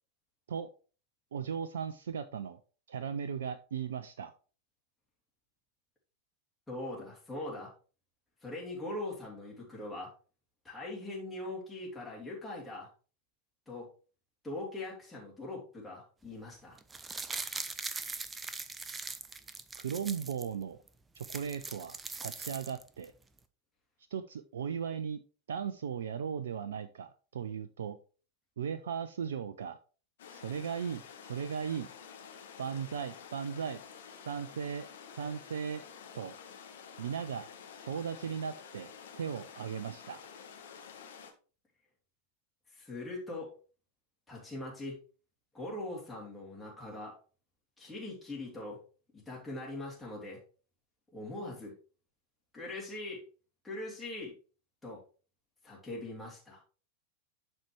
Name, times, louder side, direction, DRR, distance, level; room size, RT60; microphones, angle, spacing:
voice 1, 1.3-2.6 2.9-4.3 19.7-20.8 21.1-23.1 24.1-25.2 25.5-28.0 28.6-29.8 30.3-31.9 32.6-33.8 34.3-34.9 35.1-35.8 36.1-36.4 37.0-40.2, right 7 dB, 65° right, 12 dB, 0.5 m, -37 dB
voice 2, 6.7-7.7 8.4-10.1 10.6-12.9 13.7-13.9 14.4-16.8 42.7-43.5 44.3-45.0 45.5-47.2 47.8-48.8 49.1-50.4 51.1-51.7 52.5-53.2 53.6-54.3 54.8-55.0 55.6-56.6, left 2 dB, 5° left, -5 dB, 3.1 m, -41 dB
sound 1, 16.8-20.5 20.9-21.0 21.1-23.0 23.4-23.5, right 4 dB, 15° right, 0.6 m, -41 dB
sound 2, 30.2-41.3, left 7 dB, 60° left, 1.4 m, -50 dB
11.5 x 4.4 x 3.3 m, 0.37 s
figure-of-eight pair, 90°, 0 cm